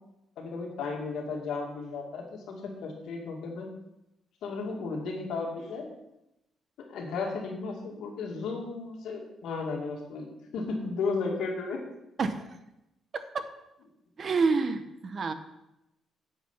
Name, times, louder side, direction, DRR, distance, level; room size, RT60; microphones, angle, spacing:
voice 1, 0.4-3.7 4.4-5.9 6.8-11.8, left 4 dB, 80° left, 1 dB, 2.3 m, -34 dB
voice 2, 14.2-15.3, right 4 dB, 45° right, 9 dB, 1.0 m, -28 dB
8.2 x 7.9 x 5.6 m, 0.89 s
cardioid pair, 90°, 0 cm